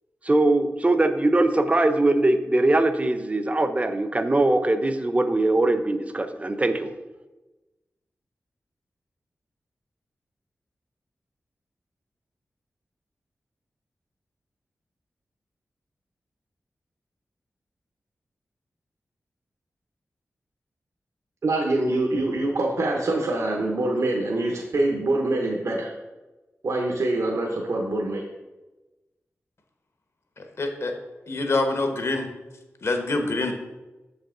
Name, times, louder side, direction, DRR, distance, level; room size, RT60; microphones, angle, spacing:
voice 1, 0.2-6.9, right 2 dB, 25° right, 9 dB, 0.5 m, -21 dB
voice 2, 21.4-25.9 26.6-28.2, right 2 dB, 75° right, -1 dB, 0.9 m, -25 dB
voice 3, 30.4-30.9 31.3-32.3 32.8-33.5, left 2 dB, 60° left, 5 dB, 1.0 m, -25 dB
6.8 x 5.4 x 3.7 m, 1.1 s
wide cardioid pair, 80°, 5 cm